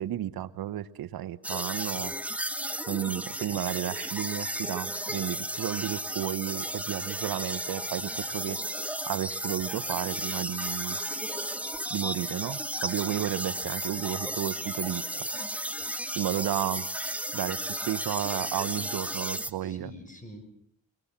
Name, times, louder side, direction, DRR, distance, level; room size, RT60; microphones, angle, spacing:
voice 1, 0.0-2.1 2.9-8.6 9.1-11.0 11.9-15.1 16.1-16.8 17.3-19.9, right 12 dB, 80° right, 16 dB, 1.0 m, -32 dB
sound 1, 1.4-19.5, right 1 dB, 5° right, 1.2 m, -34 dB
voice 2, 18.0-18.8 19.1-20.4, left 1 dB, 20° left, 8 dB, 5.7 m, -49 dB
23.5 x 21.5 x 7.4 m, 0.66 s
cardioid pair, 60°, 36 cm